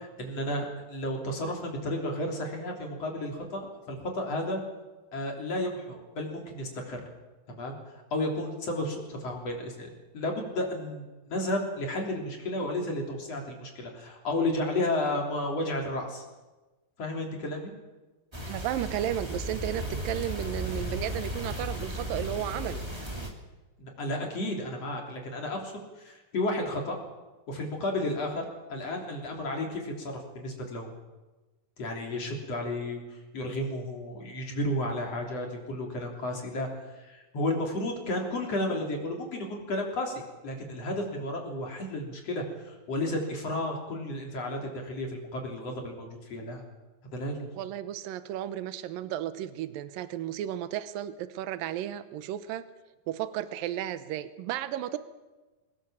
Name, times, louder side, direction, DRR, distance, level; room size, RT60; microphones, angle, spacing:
voice 1, 0.0-4.6 5.1-7.0 7.5-7.8 8.1-16.2 17.0-17.7 23.8-27.0 27.5-30.9 31.8-36.7 37.0-46.6 47.1-47.5, left 1 dB, 45° left, 1 dB, 4.2 m, -32 dB
sound 1, 18.3-23.3, equal, 10° right, 2.1 m, -35 dB
voice 2, 18.5-22.9 47.5-52.7 53.1-55.0, right 12 dB, 80° right, 12 dB, 2.6 m, -33 dB
23.0 x 18.5 x 7.4 m, 1.2 s
omnidirectional pair, 4.1 m